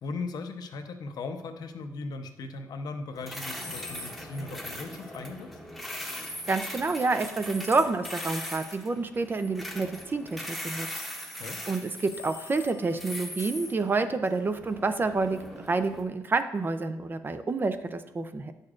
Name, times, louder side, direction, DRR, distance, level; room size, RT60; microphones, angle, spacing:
voice 1, 0.0-5.6 11.3-11.6, left 3 dB, 70° left, 6 dB, 0.7 m, -38 dB
sound 1, 3.1-16.0, equal, ahead, 1.0 m, -40 dB
sound 2, 3.6-4.5 8.0-9.0 12.1-13.2, left 6 dB, 30° left, 0.8 m, -46 dB
voice 2, 6.5-10.9 11.7-18.5, right 3 dB, 30° right, 10 dB, 0.5 m, -28 dB
9.5 x 6.5 x 2.5 m, 1.0 s
cardioid pair, 105°, 7 cm